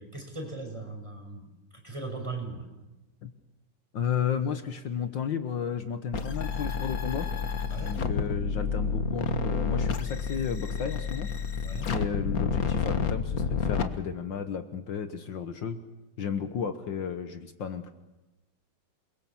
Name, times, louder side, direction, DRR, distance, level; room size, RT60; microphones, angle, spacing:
voice 1, 0.0-2.7 7.7-8.0 11.6-11.9, right 3 dB, 15° right, 2 dB, 5.8 m, -39 dB
voice 2, 3.9-7.3 7.8-15.8 16.2-17.9, left 7 dB, 65° left, 9 dB, 1.9 m, -33 dB
sound 1, 6.1-13.8, left 5 dB, 45° left, 1.8 m, -29 dB
28.5 x 23.0 x 7.3 m, 1.0 s
omnidirectional pair, 2.2 m